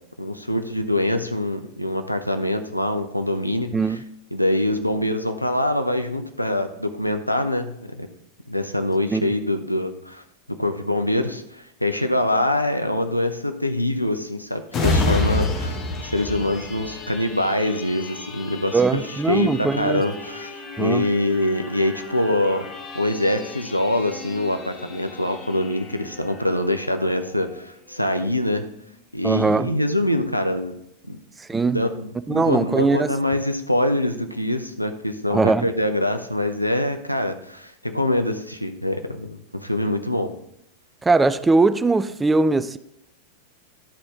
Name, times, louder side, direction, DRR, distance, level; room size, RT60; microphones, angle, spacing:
voice 1, 0.2-4.0 4.3-8.1 8.5-10.2 10.5-20.5 20.8-22.7 22.9-28.7 29.1-30.8 31.1-31.2 31.7-40.3, left 1 dB, 90° left, 0.6 m, -24 dB
sound 1, 14.7-28.0 28.5-28.6, left 3 dB, 30° left, 1.1 m, -31 dB
voice 2, 18.7-20.0 20.8-21.1 29.2-29.7 31.5-31.8 32.3-33.1 35.3-35.7 41.0-42.8, right 3 dB, 10° right, 0.3 m, -20 dB
11.5 x 4.2 x 3.7 m
figure-of-eight pair, 90°, 0 cm